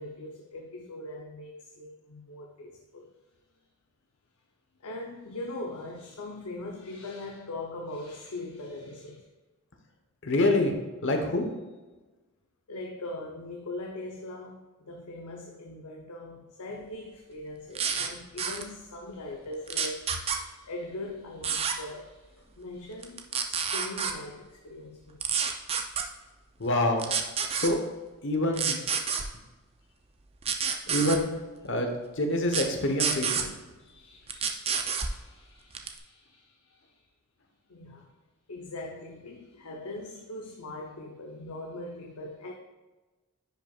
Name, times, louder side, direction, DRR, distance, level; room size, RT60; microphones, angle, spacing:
voice 1, 0.0-3.1 4.8-9.2 12.7-25.3 34.0-37.0 37.7-38.2 38.5-42.5, left 2 dB, 85° left, 0 dB, 0.8 m, -41 dB
voice 2, 10.2-10.7 11.0-11.5 26.6-27.1 27.5-27.8 28.2-28.8 30.9-31.3 31.6-33.5, left 1 dB, 55° left, 4 dB, 1.0 m, -26 dB
sound 1, 17.7-18.1 18.4-18.6 19.7-20.4 21.4-21.7 23.0-24.1 25.2-26.0 27.0-27.7 28.5-29.2 30.4-31.2 32.5-32.6 33.0-33.4 34.3-35.1 35.7-36.0, right 6 dB, 25° right, 0.5 m, -28 dB
10.0 x 5.5 x 2.4 m, 1.2 s
head